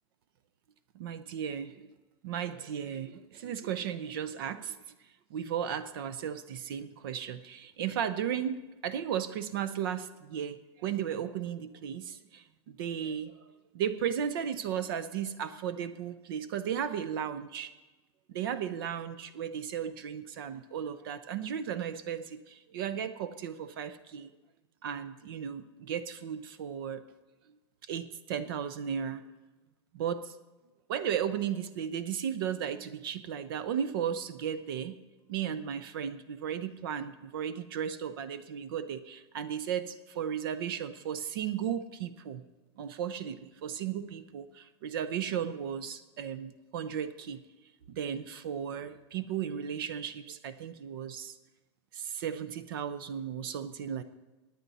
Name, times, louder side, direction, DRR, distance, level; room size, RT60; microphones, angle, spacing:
voice 1, 0.9-1.9 2.2-4.8 5.3-13.4 13.7-17.7 18.3-24.3 24.8-27.0 27.8-29.2 29.9-30.4 30.9-35.0 35.3-42.4 42.8-47.4 47.9-51.4 51.9-54.0, right 8 dB, 50° right, 14 dB, 0.6 m, -35 dB
18.0 x 9.2 x 4.1 m, 1.2 s
supercardioid pair, 170°, 15 cm